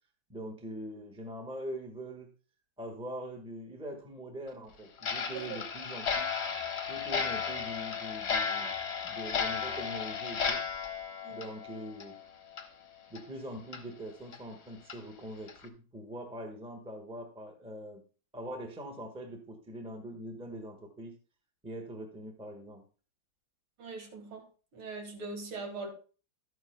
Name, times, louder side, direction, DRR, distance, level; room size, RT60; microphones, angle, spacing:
voice 1, 0.3-2.3 2.8-6.4 6.9-8.7 9.0-10.6 11.3-12.2 13.1-18.0 18.3-21.1 21.6-22.8, right 1 dB, 5° right, 0.9 m, -43 dB
Clock, 5.0-12.2 12.5-12.7 13.1-13.2 13.7-13.8 14.3-14.4 14.9-15.0 15.5-15.7, left 6 dB, 45° left, 1.0 m, -34 dB
voice 2, 23.8-24.4 24.7-25.9, right 3 dB, 85° right, 2.6 m, -41 dB
12.5 x 9.4 x 2.2 m
omnidirectional pair, 2.2 m